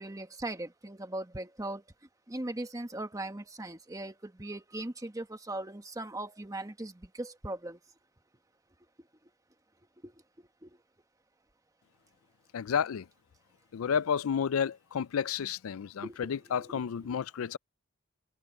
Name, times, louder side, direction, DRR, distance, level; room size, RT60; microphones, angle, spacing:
voice 1, 0.0-1.8 2.3-7.8 10.0-10.1 10.6-10.7 16.0-16.3 16.6-16.8, right 1 dB, 15° right, 1.2 m, -39 dB
voice 2, 12.5-13.1 13.7-17.6, left 7 dB, 85° left, 0.4 m, -31 dB
head